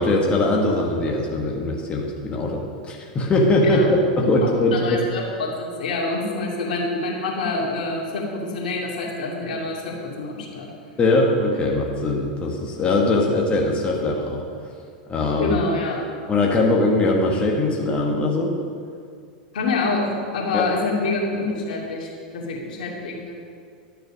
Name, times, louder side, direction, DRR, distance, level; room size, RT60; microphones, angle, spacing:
voice 1, 0.0-4.0 4.3-5.0 11.0-14.4 15.1-15.6 16.3-18.5 20.5-20.7, left 2 dB, 25° left, -1 dB, 1.6 m, -21 dB
voice 2, 4.2-10.7 15.4-16.0 19.5-20.0 20.3-23.3, left 3 dB, 75° left, -2 dB, 2.7 m, -26 dB
12.0 x 6.7 x 6.3 m, 2.3 s
hypercardioid pair, 105°, 5 cm